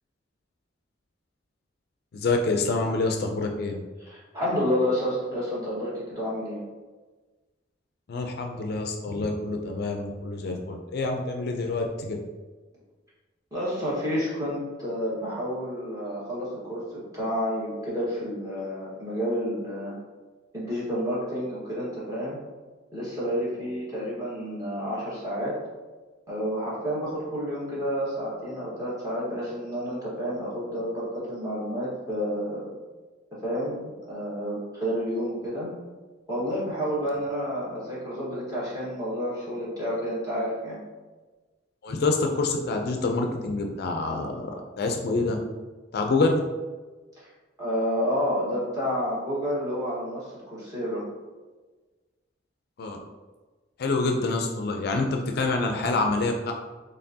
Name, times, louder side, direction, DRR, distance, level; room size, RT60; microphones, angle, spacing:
voice 1, 2.1-3.8 8.1-12.2 41.8-45.4 45.9-46.4 52.8-53.0 53.8-56.5, left 3 dB, 55° left, 3 dB, 0.4 m, -27 dB
voice 2, 4.0-6.6 13.5-16.9 17.1-19.9 20.5-22.4 22.9-25.5 26.3-32.7 33.4-35.7 36.3-40.8 47.1-47.3 47.6-51.1, equal, 20° right, -9 dB, 1.5 m, -30 dB
4.3 x 3.3 x 2.7 m, 1.3 s
head